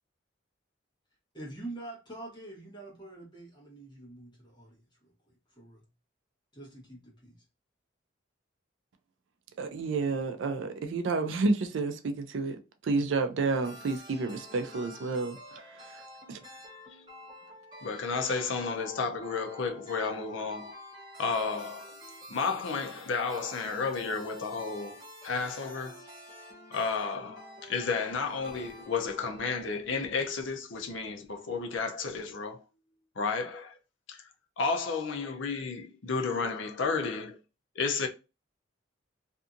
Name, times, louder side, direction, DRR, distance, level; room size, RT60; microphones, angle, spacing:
voice 1, 1.3-4.9 5.5-5.9 6.5-7.4, right 2 dB, 20° left, 1.0 m, -45 dB
voice 2, 9.6-16.0 16.3-16.4, right 3 dB, 70° right, 0.4 m, -30 dB
sound 1, 13.4-30.0, equal, 20° right, 0.9 m, -49 dB
voice 3, 17.8-20.7 21.2-21.9 22.3-25.0 25.2-26.0 26.7-32.6 33.2-33.8 34.1-34.2 34.6-37.4 37.8-38.1, left 4 dB, 70° left, 0.5 m, -32 dB
2.6 x 2.5 x 2.4 m
head